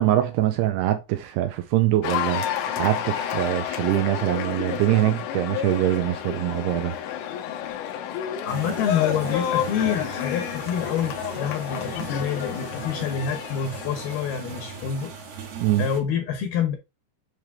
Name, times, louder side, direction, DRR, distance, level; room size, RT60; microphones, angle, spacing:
voice 1, 0.0-7.0 15.6-15.9, right 14 dB, 85° right, 2.5 m, -23 dB
Cheering / Applause, 2.0-15.4, left 10 dB, 90° left, 3.2 m, -30 dB
voice 2, 8.5-15.1 15.8-16.8, left 8 dB, 70° left, 2.5 m, -27 dB
sound 1, 8.5-16.0, right 8 dB, 70° right, 3.0 m, -39 dB
9.7 x 3.3 x 3.5 m
omnidirectional pair, 5.1 m